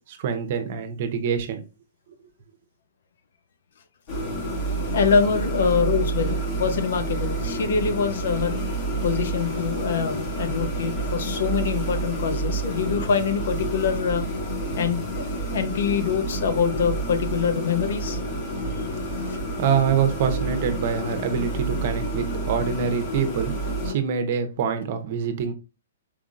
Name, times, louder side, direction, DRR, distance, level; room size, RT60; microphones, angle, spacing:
voice 1, 0.1-1.6 19.0-23.5 23.8-25.5, right 7 dB, 50° right, 0.8 m, -25 dB
sound 1, 4.1-23.9, right 2 dB, 35° left, 1.5 m, -29 dB
voice 2, 4.9-8.6 9.0-14.3 14.7-15.3 15.5-18.2, left 6 dB, 65° left, 0.7 m, -24 dB
4.8 x 3.6 x 2.5 m
hypercardioid pair, 135°, 0 cm